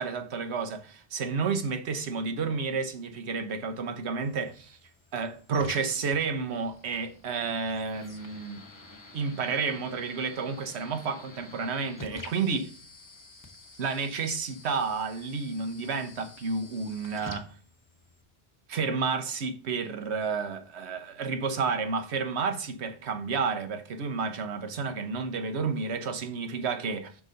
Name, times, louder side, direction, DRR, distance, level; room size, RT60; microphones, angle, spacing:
voice 1, 0.0-4.8 5.1-8.6 9.1-12.7 13.8-17.5 18.7-27.1, right 5 dB, 70° right, 1.2 m, -31 dB
sound 1, 4.2-18.2, left 2 dB, 20° left, 1.0 m, -48 dB
6.0 x 4.0 x 6.3 m
omnidirectional pair, 1.2 m